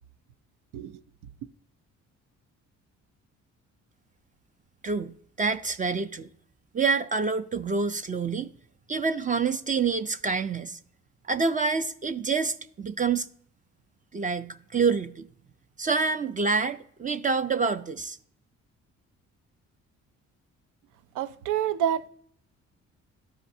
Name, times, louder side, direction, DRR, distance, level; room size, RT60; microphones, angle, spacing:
voice 1, 4.8-6.3 6.7-8.5 8.9-10.8 11.3-13.3 14.1-15.3 15.8-18.2, right 4 dB, 25° right, 0.4 m, -27 dB
voice 2, 21.1-22.1, right 10 dB, 85° right, 0.5 m, -28 dB
12.5 x 5.1 x 2.6 m
cardioid pair, 90°, 30 cm